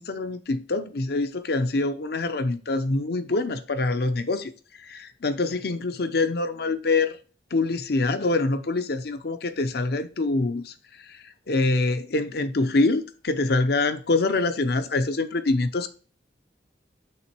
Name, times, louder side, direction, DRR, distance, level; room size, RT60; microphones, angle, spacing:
voice 1, 0.0-4.5 4.8-7.2 7.5-10.7 11.1-11.2 11.5-15.9, left 3 dB, 60° left, 0.6 m, -25 dB
9.0 x 3.6 x 4.5 m
head